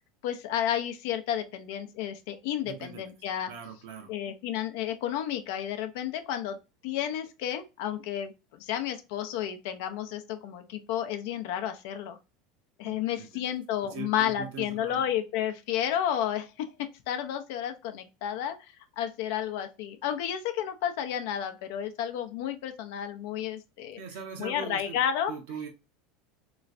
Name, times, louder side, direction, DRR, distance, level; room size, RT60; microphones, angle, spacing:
voice 1, 0.2-3.5 4.1-6.6 6.8-8.3 8.6-12.2 12.8-18.6 19.0-24.0 24.4-25.3, left 10 dB, 70° left, 0.5 m, -31 dB
voice 2, 2.6-3.1 3.5-4.1 12.8-13.3 13.9-15.0 24.0-24.9 25.3-25.7, right 5 dB, 75° right, 1.0 m, -41 dB
3.1 x 3.1 x 2.5 m
hypercardioid pair, 95°, 0 cm